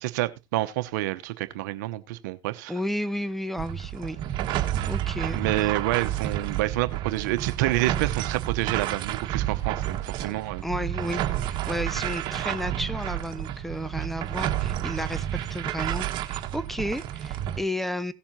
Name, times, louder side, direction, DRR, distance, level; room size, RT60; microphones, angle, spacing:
voice 1, 0.0-2.7 5.3-10.6, right 16 dB, 80° right, 0.9 m, -28 dB
voice 2, 2.7-4.2 4.5-4.6 4.9-5.7 8.8-9.0 10.6-18.1, equal, ahead, 1.0 m, -32 dB
sound 1, 3.6-17.6, right 12 dB, 55° right, 1.5 m, -30 dB
17.5 x 7.1 x 2.8 m
supercardioid pair, 90°, 10 cm